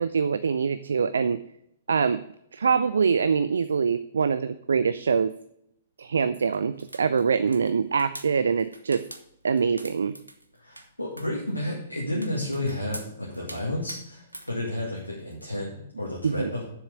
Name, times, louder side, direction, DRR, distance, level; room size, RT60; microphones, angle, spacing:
voice 1, 0.0-1.4 1.9-2.2 2.5-5.4 6.0-9.1 9.4-10.1 16.2-16.5, right 6 dB, 65° right, 13 dB, 0.4 m, -24 dB
sound 1, 6.5-15.5, right 1 dB, 85° right, 0.9 m, -45 dB
voice 2, 10.6-16.6, left 1 dB, 85° left, -4 dB, 2.1 m, -31 dB
7.1 x 7.0 x 6.5 m, 0.76 s
figure-of-eight pair, 110°, 0 cm